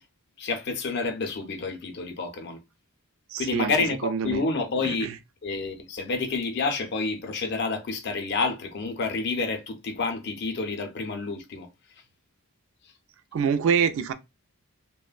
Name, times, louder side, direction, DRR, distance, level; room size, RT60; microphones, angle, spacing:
voice 1, 0.4-2.6 3.4-5.1 5.4-11.7, left 3 dB, 50° left, 0.5 m, -29 dB
voice 2, 3.3-3.7 4.0-4.4 4.8-5.2 13.3-14.1, right 7 dB, 60° right, 0.3 m, -25 dB
2.9 x 2.0 x 2.4 m
head